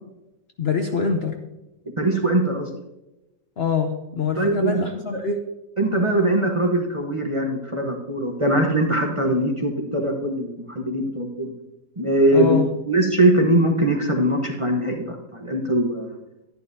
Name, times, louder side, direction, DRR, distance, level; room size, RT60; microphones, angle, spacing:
voice 1, 0.6-1.4 3.6-5.4 12.3-12.7, left 5 dB, 55° left, 4 dB, 0.8 m, -24 dB
voice 2, 2.0-2.7 4.4-4.8 5.8-11.5 12.0-12.6 12.9-16.2, right 1 dB, 25° right, 1 dB, 0.9 m, -21 dB
11.5 x 11.0 x 2.7 m, 0.97 s
omnidirectional pair, 1.6 m